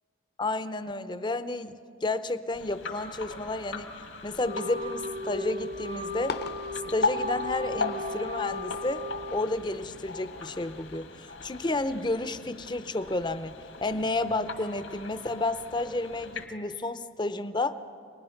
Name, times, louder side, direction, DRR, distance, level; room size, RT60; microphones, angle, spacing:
voice 1, 0.4-1.7 2.0-3.9 4.2-6.3 6.9-9.1 9.3-13.6 13.8-17.7, left 2 dB, 25° left, 12 dB, 0.6 m, -31 dB
sound 1, 2.5-16.5, left 3 dB, 75° left, 1.7 m, -38 dB
Wind instrument woodwind instrument, 4.4-10.1, left 1 dB, 60° right, 1.2 m, -37 dB
sound 2, 5.7-11.0, left 4 dB, 55° left, 0.9 m, -44 dB
27.5 x 20.0 x 5.8 m, 2.2 s
head